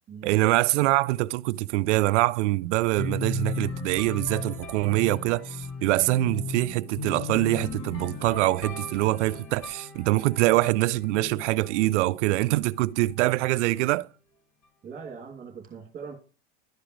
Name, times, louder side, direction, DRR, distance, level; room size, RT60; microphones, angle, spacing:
voice 1, 0.2-14.1, right 19 dB, 75° right, 0.5 m, -24 dB
sound 1, 3.0-12.8, left 4 dB, 35° left, 1.9 m, -37 dB
voice 2, 14.8-16.1, right 6 dB, 25° right, 2.5 m, -41 dB
12.0 x 5.0 x 3.1 m
supercardioid pair, 125°, 35 cm